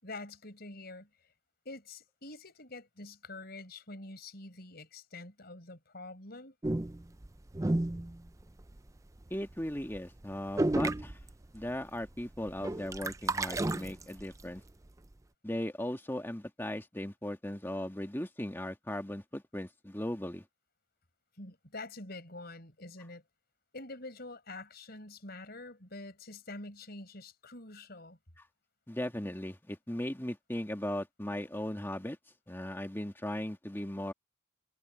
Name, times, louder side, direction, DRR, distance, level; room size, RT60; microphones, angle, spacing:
voice 1, 0.0-1.1 1.7-6.5 21.4-23.2 23.7-28.2, left 2 dB, 50° left, 5.6 m, -46 dB
sound 1, 6.6-8.9 9.2-9.5 9.8-10.0 10.2-10.3 10.6-11.8 12.0-14.5, right 2 dB, 15° right, 0.5 m, -32 dB
voice 2, 9.3-11.2 11.5-14.6 15.4-20.4 28.9-32.2 32.5-34.1, left 1 dB, 10° left, 1.8 m, -37 dB
head